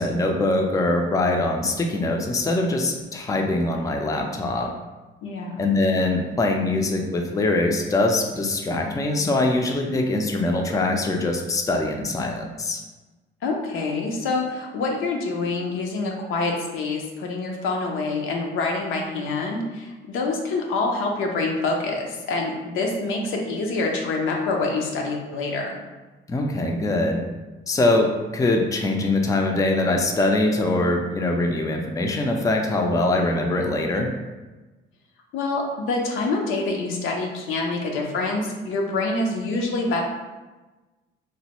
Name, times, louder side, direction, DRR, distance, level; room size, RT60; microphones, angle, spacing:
voice 1, 0.0-4.7 5.6-12.8 26.3-27.2 27.7-34.1, left 2 dB, 15° left, 2 dB, 0.4 m, -23 dB
voice 2, 5.2-5.6 13.4-25.7 35.3-40.0, left 3 dB, 90° left, 1 dB, 0.6 m, -26 dB
3.1 x 2.1 x 2.9 m, 1.2 s
cardioid pair, 90°, 20 cm